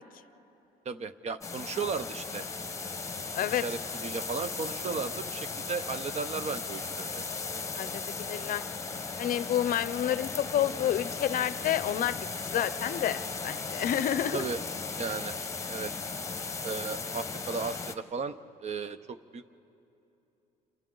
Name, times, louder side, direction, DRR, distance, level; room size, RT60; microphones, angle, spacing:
voice 1, 0.9-2.5 3.5-7.2 14.3-14.6 15.0-15.3 15.7-15.9 16.6-19.4, right 5 dB, 40° right, 12 dB, 0.7 m, -35 dB
sound 1, 1.4-17.9, left 4 dB, 15° left, 1.0 m, -37 dB
voice 2, 7.8-8.6 9.2-14.4, left 11 dB, 55° left, 15 dB, 0.6 m, -29 dB
29.0 x 27.0 x 3.9 m, 2.9 s
cardioid pair, 110°, 17 cm